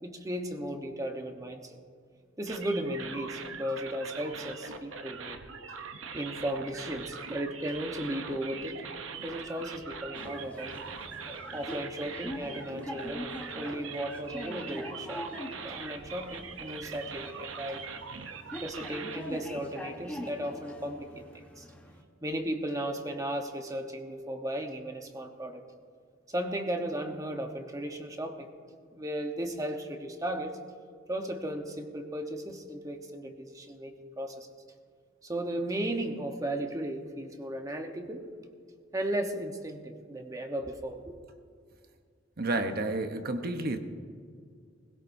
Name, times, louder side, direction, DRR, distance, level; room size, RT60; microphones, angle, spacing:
voice 1, 0.0-1.8 2.4-5.4 6.1-8.9 9.2-10.8 11.5-15.2 15.5-17.9 18.6-21.6 22.2-25.6 26.3-28.5 28.9-30.6 31.1-34.5 35.2-38.3 38.9-41.1, right 1 dB, 15° right, 4 dB, 1.1 m, -35 dB
sound 1, 2.5-19.2, right 5 dB, 85° right, 0.8 m, -42 dB
sound 2, 10.1-22.0, left 1 dB, 10° left, 1.1 m, -43 dB
voice 2, 42.4-43.8, right 2 dB, 50° right, 7 dB, 1.0 m, -30 dB
20.0 x 16.5 x 2.7 m, 2.1 s
head